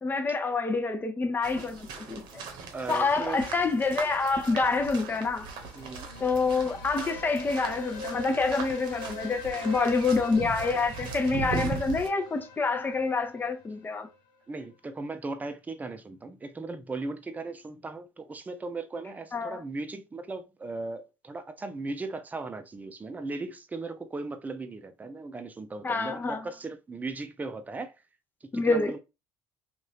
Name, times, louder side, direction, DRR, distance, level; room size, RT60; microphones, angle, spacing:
voice 1, 0.0-2.4 2.9-5.5 6.2-14.1 19.3-19.6 25.8-26.4 28.5-28.9, left 4 dB, 25° left, 0.7 m, -27 dB
sound 1, 1.4-12.1, right 4 dB, 70° right, 0.9 m, -39 dB
voice 2, 2.7-3.4 5.8-6.1 14.5-27.9 28.4-29.0, right 3 dB, 20° right, 0.6 m, -37 dB
sound 2, 5.3-14.1, left 2 dB, 70° left, 0.8 m, -42 dB
2.7 x 2.5 x 3.3 m
supercardioid pair, 90°, 8 cm